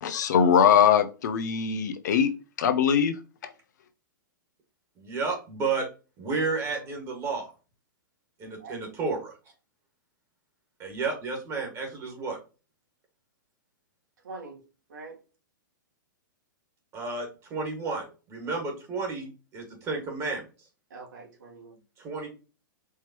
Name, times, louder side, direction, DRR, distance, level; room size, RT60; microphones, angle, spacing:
voice 1, 0.0-2.3 2.6-3.2, left 8 dB, 60° left, 0.6 m, -21 dB
voice 2, 5.0-5.9 6.2-7.5 8.4-9.3 10.8-12.4 16.9-20.4 22.0-22.3, right 4 dB, 25° right, 1.7 m, -32 dB
voice 3, 8.4-9.1 14.2-15.2 17.9-18.1 20.9-21.8, right 3 dB, 65° right, 2.1 m, -45 dB
4.7 x 2.9 x 2.9 m
figure-of-eight pair, 110°, 11 cm